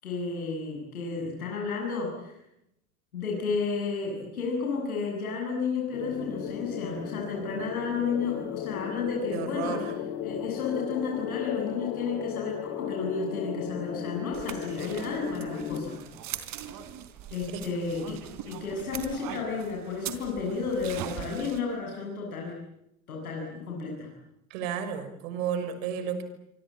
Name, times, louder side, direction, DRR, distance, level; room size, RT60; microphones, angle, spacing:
voice 1, 0.0-2.4 3.1-9.8 10.2-16.0 17.3-18.1 18.4-22.6 23.1-24.1, left 5 dB, 90° left, -1 dB, 8.0 m, -32 dB
sound 1, 5.9-15.8, left 8 dB, 60° left, 5.6 m, -36 dB
voice 2, 9.3-9.9 17.5-17.6 24.5-26.2, right 8 dB, 70° right, 10 dB, 6.1 m, -32 dB
sound 2, 14.3-21.6, right 10 dB, 50° right, 4.1 m, -41 dB
26.5 x 25.0 x 8.8 m, 0.82 s
hypercardioid pair, 85°, 42 cm